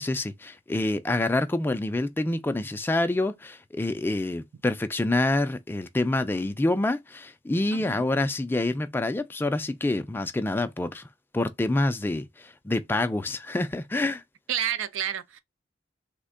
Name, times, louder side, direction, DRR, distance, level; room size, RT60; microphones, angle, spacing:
voice 1, 0.0-11.0 11.3-14.2, left 2 dB, 10° left, 0.3 m, -27 dB
voice 2, 7.7-8.1 14.5-15.4, right 9 dB, 90° right, 0.4 m, -30 dB
3.4 x 2.1 x 3.6 m
head